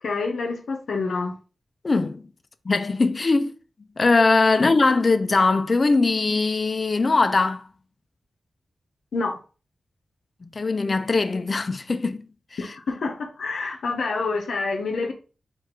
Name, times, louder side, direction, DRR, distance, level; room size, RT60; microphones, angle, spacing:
voice 1, 0.0-1.3 9.1-9.4 12.6-15.1, left 4 dB, 80° left, 0.8 m, -27 dB
voice 2, 1.8-2.2 2.7-3.5 4.0-7.7 10.4-12.2, left 3 dB, 35° left, 0.4 m, -21 dB
4.6 x 2.5 x 4.6 m
wide cardioid pair, 145°, 0 cm